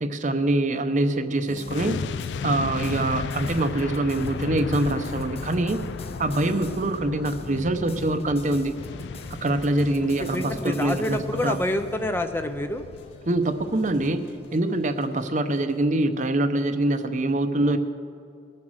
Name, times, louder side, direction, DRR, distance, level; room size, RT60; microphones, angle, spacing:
voice 1, 0.0-2.0 2.4-5.8 6.2-8.7 9.4-11.6 13.3-14.3 14.5-17.8, right 2 dB, 40° right, 8 dB, 0.7 m, -24 dB
sound 1, 1.5-15.3, left 1 dB, 35° left, 1.0 m, -42 dB
sound 2, 1.7-14.8 15.1-15.3, left 5 dB, 70° left, 0.3 m, -36 dB
voice 2, 10.2-12.8, left 1 dB, 10° left, 7 dB, 0.5 m, -27 dB
20.5 x 7.4 x 6.4 m, 2.4 s
head